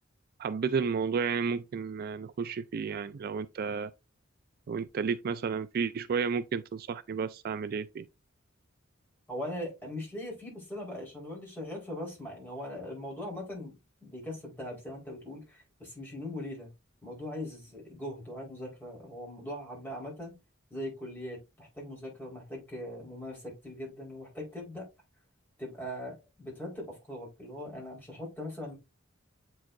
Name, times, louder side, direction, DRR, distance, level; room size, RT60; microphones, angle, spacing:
voice 1, 0.4-3.9 4.7-8.1, right 5 dB, 50° right, 0.4 m, -32 dB
voice 2, 9.3-13.7 14.0-16.7 17.0-20.3 20.7-24.9 25.6-28.7, left 1 dB, 10° left, 4.3 m, -40 dB
8.4 x 4.6 x 2.6 m
head